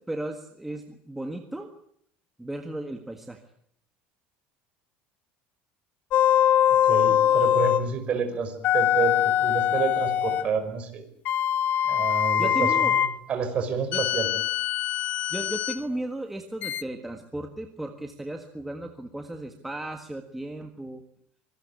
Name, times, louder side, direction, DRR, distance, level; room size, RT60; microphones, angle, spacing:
voice 1, 0.0-1.7 2.4-3.4 12.4-13.0 13.9-14.0 15.3-21.0, right 1 dB, 5° right, 5 dB, 1.7 m, -35 dB
sound 1, 6.1-7.9 8.6-10.5 11.3-13.2 13.9-15.8 16.6-16.8, left 10 dB, 45° left, 1.0 m, -23 dB
voice 2, 6.7-11.0 11.8-14.3, right 5 dB, 30° right, 6 dB, 5.7 m, -29 dB
26.0 x 20.0 x 8.4 m, 0.69 s
cardioid pair, 160°, 4 cm